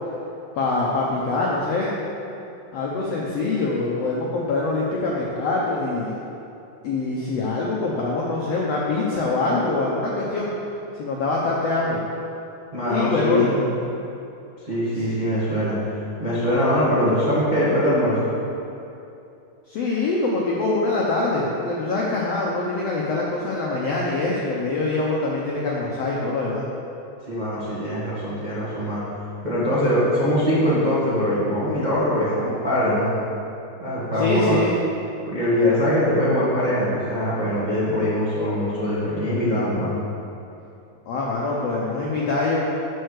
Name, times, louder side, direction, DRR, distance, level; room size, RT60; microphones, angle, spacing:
voice 1, 0.6-1.9 2.7-6.1 6.8-10.5 11.0-12.0 12.9-13.5 15.0-15.1 19.7-26.6 34.1-34.7 41.1-42.6, left 3 dB, 80° left, -4 dB, 1.4 m, -24 dB
voice 2, 12.7-13.5 14.7-15.8 16.2-18.3 27.3-29.0 29.4-33.1 33.8-34.6 35.3-40.0, left 1 dB, 60° right, -10 dB, 0.4 m, -22 dB
9.1 x 4.5 x 6.5 m, 2.7 s
omnidirectional pair, 3.9 m